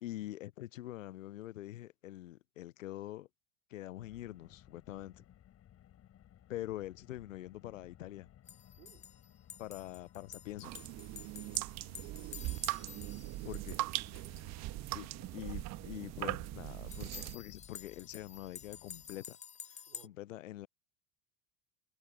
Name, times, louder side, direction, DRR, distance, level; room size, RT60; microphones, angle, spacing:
voice 1, 0.0-3.3 3.7-5.2 6.5-8.3 9.6-10.8 13.4-13.8 14.9-19.4 20.0-20.7, left 14 dB, 75° left, 0.6 m, -45 dB
Car, 4.0-19.2, left 11 dB, 40° left, 5.5 m, -60 dB
sound 1, 8.5-14.6 16.8-20.1, left 7 dB, 20° left, 0.7 m, -51 dB
voice 2, 8.8-9.1 14.1-14.4 14.7-14.9 19.9-20.2, right 14 dB, 70° right, 5.0 m, -63 dB
sound 2, 10.6-17.4, right 19 dB, 45° right, 1.1 m, -40 dB
figure-of-eight pair, 75°, 39 cm